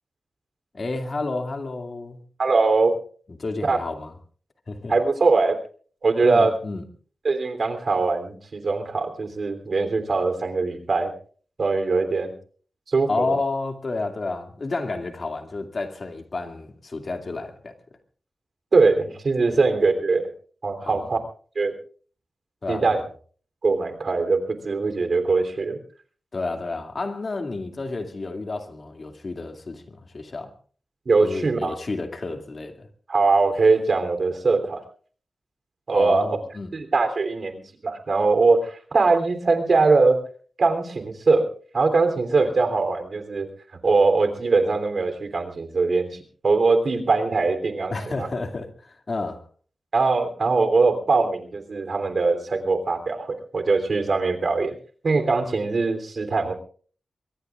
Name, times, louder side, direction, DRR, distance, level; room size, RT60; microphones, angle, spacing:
voice 1, 0.7-2.2 3.4-4.1 4.7-4.9 6.2-6.8 13.1-17.7 19.5-19.6 20.8-21.1 22.6-23.1 26.3-30.5 31.2-32.9 35.9-36.7 47.9-49.4, left 3 dB, 55° left, 2.3 m, -30 dB
voice 2, 2.4-3.0 3.7-3.8 4.9-5.6 6.0-6.5 7.2-11.1 11.6-12.3 12.9-13.3 18.7-20.3 20.6-21.2 21.5-21.7 22.7-23.0 23.6-25.8 31.0-31.7 33.1-34.8 35.9-36.3 36.7-40.2 40.6-41.5 41.7-43.5 43.8-46.2 46.4-48.3 49.9-54.7 55.0-56.5, right 3 dB, 65° right, 3.2 m, -21 dB
23.5 x 22.0 x 2.5 m
cardioid pair, 60°, 0 cm